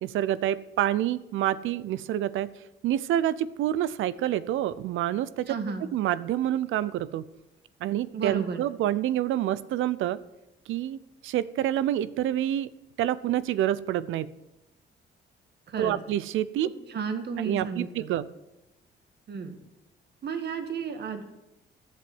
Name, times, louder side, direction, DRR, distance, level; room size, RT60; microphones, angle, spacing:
voice 1, 0.0-2.5 2.8-5.6 5.9-7.3 7.8-10.2 10.7-12.7 13.0-14.3 15.8-16.7 17.4-18.3, right 12 dB, 85° right, 17 dB, 0.6 m, -27 dB
voice 2, 5.5-5.8 8.1-8.6 15.7-16.0 16.9-18.1 19.3-19.6 20.2-21.2, right 5 dB, 55° right, 7 dB, 1.7 m, -33 dB
11.5 x 7.6 x 7.9 m, 0.94 s
cardioid pair, 90°, 20 cm